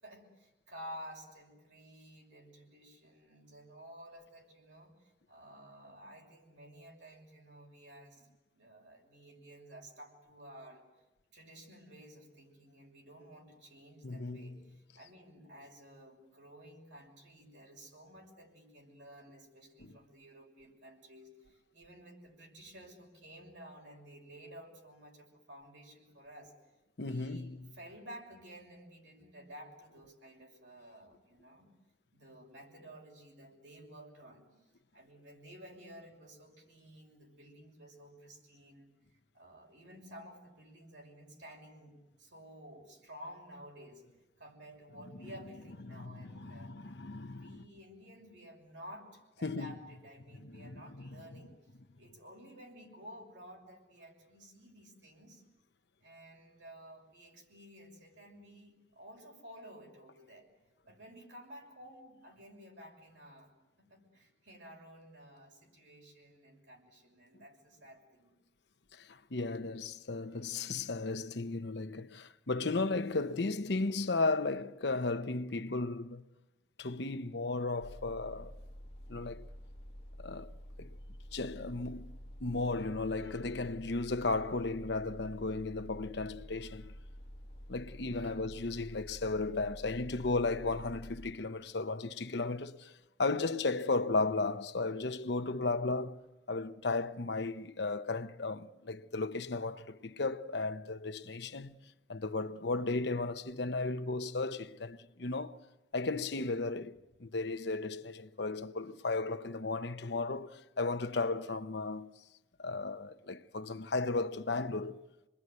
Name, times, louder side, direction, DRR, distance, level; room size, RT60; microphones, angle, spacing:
voice 1, 0.0-8.3 8.5-10.8 11.3-26.5 27.0-31.7 32.1-34.7 34.9-44.0 44.4-46.7 47.2-51.6 52.0-55.4 56.0-60.5 60.8-63.5 63.8-68.3 88.1-88.4, equal, 75° right, 6.5 m, -53 dB
voice 2, 14.0-14.6 19.8-19.9 27.0-27.7 45.2-45.3 45.9-47.6 49.4-49.7 50.4-51.2 68.9-76.3 76.8-78.6 79.1-79.5 80.2-80.5 80.8-80.9 81.3-86.9 87.7-92.9 93.2-96.2 96.5-101.8 102.1-105.6 105.9-112.1 112.6-115.0, left 3 dB, 65° left, 0.9 m, -35 dB
sound 1, 77.8-91.3, equal, 30° left, 1.9 m, -49 dB
27.0 x 21.0 x 9.5 m
head